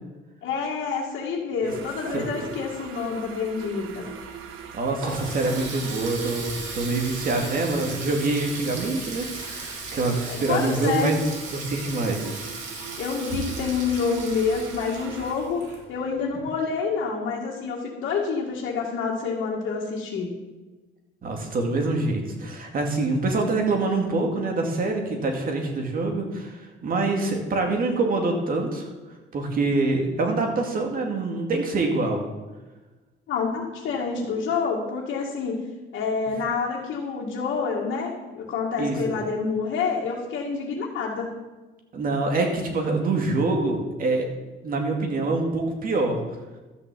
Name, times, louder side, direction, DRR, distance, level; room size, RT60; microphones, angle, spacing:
voice 1, 0.4-4.1 10.3-11.1 13.0-15.6 15.9-20.3 33.3-35.6 35.9-41.3, left 5 dB, 65° left, -4 dB, 2.1 m, -28 dB
sound 1, 1.7-15.3, right 7 dB, 85° right, 1.3 m, -41 dB
Water tap faucet, 4.6-16.2, right 3 dB, 65° right, 3.1 m, -37 dB
voice 2, 4.7-11.2 11.5-12.4 21.2-28.9 29.3-32.2 38.8-39.2 41.9-44.3 44.6-46.2, right 3 dB, 45° right, 2 dB, 2.3 m, -25 dB
12.5 x 6.2 x 7.5 m, 1.2 s
cardioid pair, 145°, 21 cm